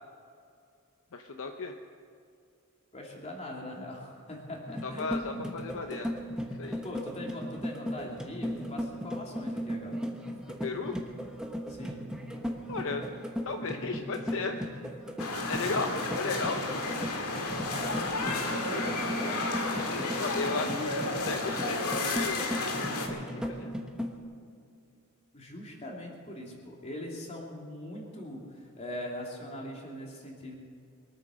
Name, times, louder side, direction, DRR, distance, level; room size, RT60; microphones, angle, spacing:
voice 1, 1.1-1.7 4.8-6.2 6.5-6.8 10.6-11.0 12.7-13.1 13.4-14.6 15.5-16.8 20.2-20.7 21.3-23.7, left 4 dB, 65° left, 5 dB, 0.8 m, -35 dB
voice 2, 2.9-5.6 6.8-10.0 11.7-12.0 17.7-19.5 20.6-21.0 25.3-30.5, left 1 dB, 30° left, -1 dB, 2.9 m, -41 dB
sound 1, 4.7-24.2, equal, 5° right, 1.1 m, -37 dB
sound 2, 15.2-23.1, left 2 dB, 85° left, 2.0 m, -32 dB
23.0 x 9.1 x 6.4 m, 2.4 s
head